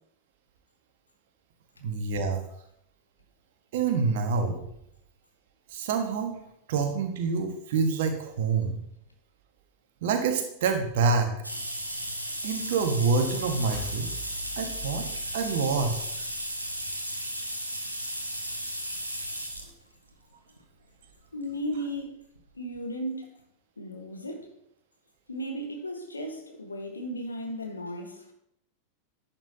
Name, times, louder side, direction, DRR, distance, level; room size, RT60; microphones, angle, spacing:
voice 1, 1.8-2.4 3.7-4.6 5.7-6.3 6.7-8.7 10.0-11.3 12.4-14.1 14.6-15.1 15.3-16.0, right 4 dB, 55° right, 4 dB, 1.5 m, -26 dB
sound 1, 11.4-19.7 20.6-20.7 21.9-22.0 22.4-22.5 22.7-22.8, equal, 90° right, 1.2 m, -35 dB
sound 2, 12.5-16.4, equal, 20° right, 2.4 m, -45 dB
voice 2, 21.3-22.2 22.5-23.4 23.8-24.5 25.3-28.3, equal, 80° left, 3 dB, 1.3 m, -35 dB
11.0 x 7.5 x 2.8 m, 0.75 s
figure-of-eight pair, 90°, 0 cm